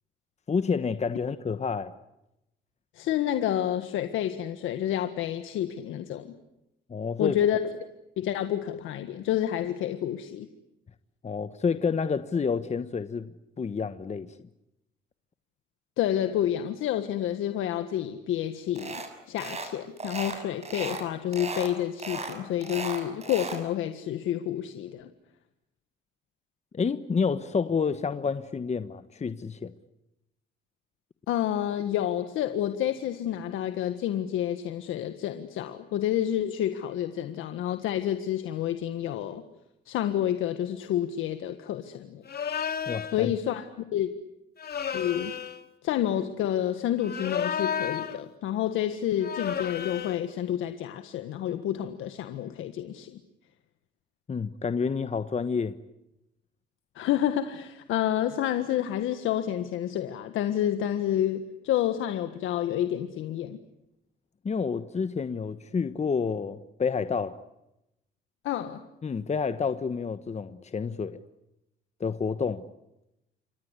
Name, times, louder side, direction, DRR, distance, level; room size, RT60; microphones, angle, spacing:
voice 1, 0.5-1.9 6.9-7.4 11.2-13.3 13.6-14.4 26.7-29.7 42.9-43.3 54.3-55.7 64.4-67.4 69.0-71.2 72.0-72.6, left 5 dB, 35° left, 1.2 m, -29 dB
voice 2, 2.9-6.3 7.2-7.6 8.2-10.5 16.0-19.0 19.3-25.1 31.3-39.4 39.9-42.2 43.1-43.6 43.9-44.1 44.9-45.4 45.8-53.2 56.9-63.6 68.4-68.8, left 11 dB, 90° left, 1.6 m, -29 dB
sound 1, 18.8-19.1 19.4-19.7 20.0-21.0 21.3-21.7 22.0-23.6, right 3 dB, 35° right, 6.7 m, -35 dB
sound 2, 42.3-43.2 44.6-45.6 47.0-48.2 49.2-50.3, left 7 dB, 55° left, 2.4 m, -32 dB
29.0 x 24.5 x 8.3 m
cardioid pair, 90°, 20 cm